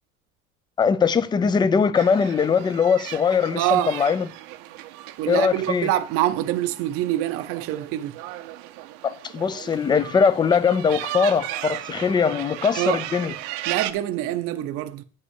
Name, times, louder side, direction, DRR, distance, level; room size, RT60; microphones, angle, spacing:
voice 1, 0.8-4.3 5.3-5.9 9.0-13.4, left 6 dB, 15° left, 0.4 m, -21 dB
sound 1, 2.0-13.9, right 14 dB, 80° right, 1.0 m, -36 dB
voice 2, 3.6-3.9 5.2-8.2 12.8-13.0 13.7-15.0, right 13 dB, 50° right, 0.7 m, -25 dB
9.8 x 5.5 x 8.2 m
cardioid pair, 175°, 29 cm